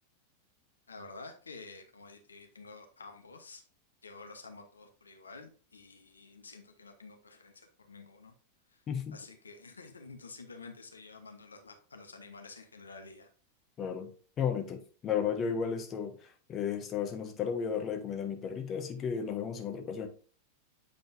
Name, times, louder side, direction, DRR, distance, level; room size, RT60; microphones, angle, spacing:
voice 1, 0.9-3.6 4.0-8.3 8.7-8.8 9.1-13.3, left 3 dB, 75° left, 0.9 m, -50 dB
voice 2, 8.9-9.2 13.8-14.1 14.4-20.1, left 7 dB, 30° left, 1.1 m, -34 dB
8.0 x 5.2 x 2.6 m
figure-of-eight pair, 90°, 0 cm